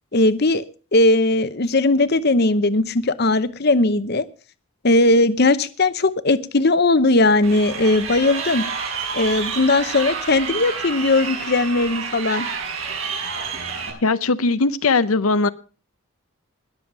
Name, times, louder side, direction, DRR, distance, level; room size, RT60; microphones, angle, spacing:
voice 1, 0.1-0.6 0.9-4.2 4.8-8.6 9.1-12.5, left 2 dB, 45° left, 14 dB, 0.8 m, -18 dB
Crowd, 7.4-13.9, right 5 dB, 70° right, 6.1 m, -29 dB
voice 2, 14.0-15.5, left 3 dB, 80° left, 12 dB, 0.7 m, -19 dB
20.5 x 7.2 x 5.9 m, 0.38 s
head